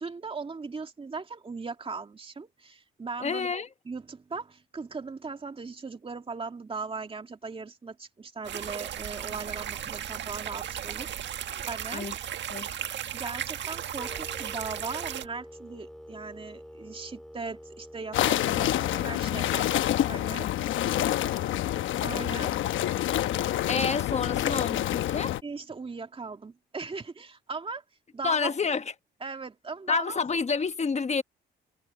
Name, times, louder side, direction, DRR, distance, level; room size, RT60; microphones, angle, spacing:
voice 1, 0.0-12.0 13.1-19.8 20.1-20.5 22.0-22.5 25.4-27.8 28.1-28.5 29.2-30.2, right 4 dB, 30° right, 2.6 m, -38 dB
voice 2, 3.2-3.7 11.9-12.1 12.5-12.7 22.1-22.2 23.7-25.3 28.2-28.9 29.9-31.2, left 5 dB, 35° left, 1.3 m, -29 dB
sound 1, 8.4-15.3, right 9 dB, 65° right, 1.6 m, -35 dB
sound 2, 14.0-20.0, equal, ahead, 3.4 m, -48 dB
sound 3, 18.1-25.4, left 12 dB, 80° left, 1.0 m, -27 dB
cardioid pair, 90°, 20 cm